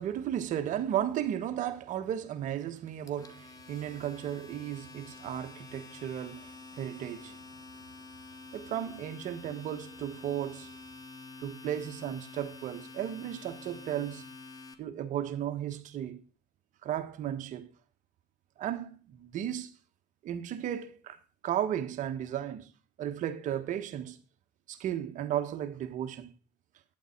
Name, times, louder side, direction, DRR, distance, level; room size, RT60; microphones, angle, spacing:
voice 1, 0.0-7.4 8.5-10.7 11.4-14.2 14.8-16.2 16.8-17.7 18.6-19.7 20.2-22.7 23.0-24.2 24.7-26.3, right 10 dB, 60° right, 1.4 m, -35 dB
Domestic sounds home sounds, 2.9-14.7, left 3 dB, 25° left, 1.8 m, -48 dB
11.5 x 9.8 x 4.6 m
supercardioid pair, 85°, 14 cm